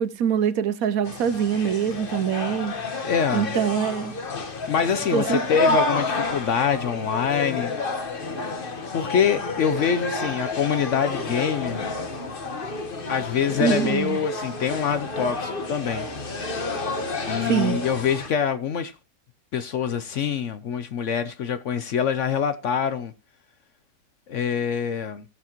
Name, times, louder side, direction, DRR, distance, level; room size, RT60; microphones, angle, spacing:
voice 1, 0.0-2.7 3.3-4.1 5.1-5.4 5.7-5.8 9.7-10.3 13.6-14.2 17.4-17.8, right 8 dB, 65° right, 1.0 m, -24 dB
sound 1, 1.0-18.3, left 3 dB, 35° left, 1.3 m, -30 dB
voice 2, 3.0-3.5 4.7-7.7 8.9-11.8 13.1-16.1 17.2-18.9 19.5-23.1 24.3-25.2, left 7 dB, 60° left, 0.8 m, -25 dB
15.5 x 7.2 x 2.9 m
omnidirectional pair, 1.7 m